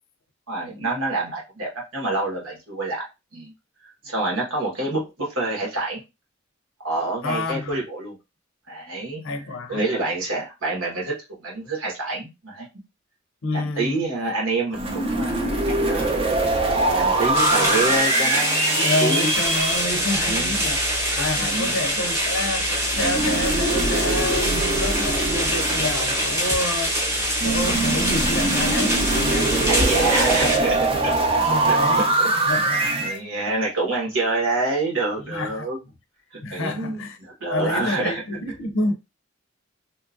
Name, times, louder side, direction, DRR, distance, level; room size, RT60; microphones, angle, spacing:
voice 1, 0.5-3.1 3.3-3.5 3.8-6.0 6.8-8.2 8.7-9.2 9.7-12.7 13.5-16.2 16.9-19.3 20.1-20.5 21.4-21.7 29.7-31.2 31.7-31.8 32.2-32.3 33.0-35.8 36.3-38.2, right 2 dB, 80° right, 1.3 m, -27 dB
voice 2, 7.2-7.8 9.2-9.9 13.4-14.0 18.7-20.8 21.1-27.1 27.4-30.6 30.9-31.1 31.4-32.1 32.5-33.1 35.3-35.7 36.4-37.2 37.5-38.9, left 2 dB, 70° left, 0.5 m, -29 dB
sound 1, 14.7-19.8 22.9-26.7 27.4-33.2, right 2 dB, 30° right, 0.5 m, -23 dB
sound 2, 17.3-30.6, equal, 15° right, 1.0 m, -24 dB
sound 3, 19.3-29.9, left 1 dB, 20° left, 0.6 m, -36 dB
2.9 x 2.4 x 2.5 m
head